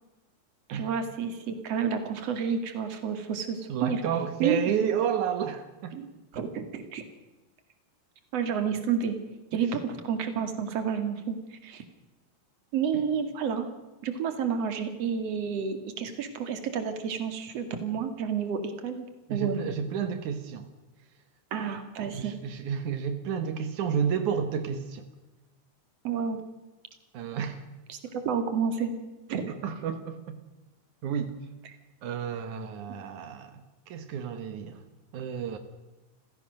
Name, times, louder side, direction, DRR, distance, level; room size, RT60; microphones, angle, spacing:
voice 1, 0.7-4.0 4.4-4.6 5.9-6.1 6.3-7.0 8.3-9.2 9.5-11.4 11.6-11.8 12.7-13.7 14.0-19.0 19.3-19.7 21.5-22.3 26.0-26.4 27.9-28.9 29.3-29.5, right 7 dB, 50° right, 8 dB, 2.1 m, -30 dB
voice 2, 3.7-6.0 9.5-9.7 19.3-20.7 22.1-25.1 27.1-27.6 29.5-30.4 31.0-31.3 32.0-33.6 33.9-34.8 35.1-35.6, right 7 dB, 90° right, 8 dB, 1.7 m, -31 dB
29.5 x 16.0 x 6.5 m, 1.1 s
omnidirectional pair, 5.8 m